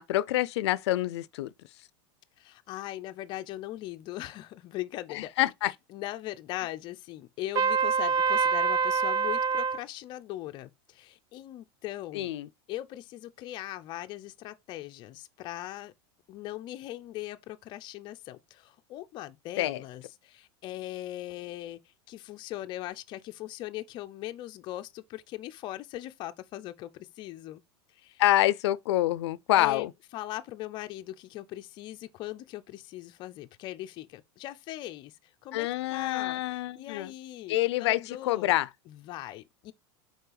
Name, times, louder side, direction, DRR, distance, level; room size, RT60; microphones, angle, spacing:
voice 1, 0.0-1.5 5.1-5.7 12.1-12.5 19.6-19.8 28.2-29.9 35.5-37.1 37.5-38.7, left 15 dB, 90° left, 0.4 m, -27 dB
voice 2, 2.4-5.3 5.9-12.3 12.7-15.9 16.3-21.8 22.1-27.6 28.0-28.2 29.6-29.9 30.1-35.1 35.4-38.5 38.9-39.7, left 15 dB, 35° left, 0.5 m, -40 dB
Trumpet, 7.5-9.8, right 6 dB, 25° right, 0.3 m, -25 dB
5.5 x 4.3 x 3.9 m
supercardioid pair, 155°, 14 cm